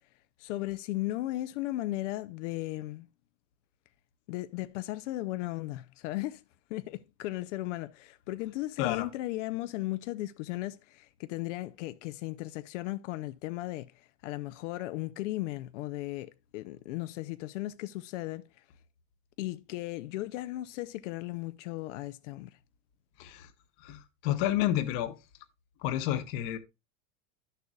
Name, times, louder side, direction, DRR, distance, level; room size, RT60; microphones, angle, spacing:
voice 1, 0.4-3.1 4.3-6.4 6.7-18.6 19.4-22.6, left 17 dB, 85° left, 0.6 m, -36 dB
voice 2, 8.8-9.1 23.2-23.5 23.8-25.1 25.8-26.6, left 12 dB, 45° left, 0.8 m, -30 dB
10.5 x 6.8 x 2.3 m
supercardioid pair, 175°, 35 cm